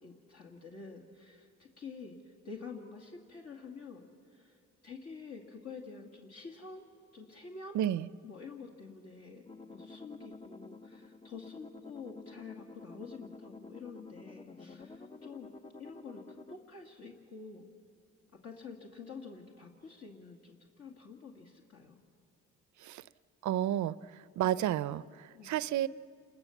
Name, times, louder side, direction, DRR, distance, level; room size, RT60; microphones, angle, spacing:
voice 1, 0.0-4.6 4.8-6.8 7.1-7.8 8.2-9.4 9.7-15.5 15.8-17.7 18.4-22.0 25.3-25.5, left 4 dB, 55° left, 0 dB, 2.4 m, -48 dB
voice 2, 7.7-8.1 22.8-23.0 23.4-25.9, right 12 dB, 70° right, 18 dB, 0.6 m, -32 dB
sound 1, 9.5-16.6, left 3 dB, 20° left, 0.7 m, -50 dB
28.5 x 20.0 x 7.2 m, 2.5 s
cardioid pair, 90°, 30 cm